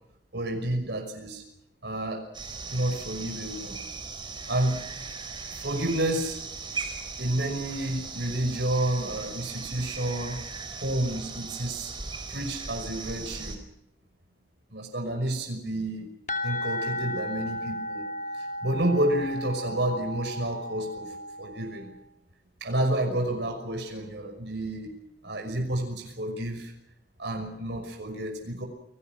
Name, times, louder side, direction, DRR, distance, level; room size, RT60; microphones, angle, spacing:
voice 1, 0.3-1.4 1.8-2.3 2.7-3.8 4.5-4.8 5.5-6.4 7.2-10.4 10.8-12.0 12.3-13.6 14.7-16.1 16.4-18.0 18.3-21.9 22.6-25.0 25.2-26.7 27.2-28.7, right 1 dB, 75° right, 3 dB, 5.9 m, -30 dB
sound 1, 2.3-13.6, right 4 dB, 30° right, 4.6 m, -38 dB
sound 2, 16.3-21.9, left 1 dB, 45° left, 2.4 m, -34 dB
29.0 x 20.0 x 6.2 m, 0.82 s
head